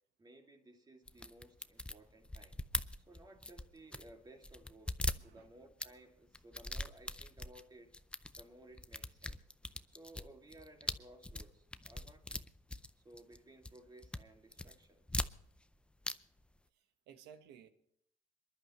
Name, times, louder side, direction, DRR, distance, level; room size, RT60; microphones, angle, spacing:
voice 1, 0.2-2.6 3.0-7.9 8.4-9.5 9.8-12.5 13.0-15.0, right 1 dB, 25° right, 2 dB, 2.4 m, -58 dB
sound 1, 1.1-4.1 4.4-5.9 6.3-7.6 7.9-8.4 8.8-13.4 13.6-14.2 14.5-15.7 16.0-16.1 16.4-16.5, left 1 dB, 5° left, 0.5 m, -41 dB
voice 2, 16.7-17.7, right 8 dB, 80° right, 9 dB, 1.4 m, -57 dB
27.0 x 11.0 x 3.1 m, 0.72 s
cardioid pair, 110°, 17 cm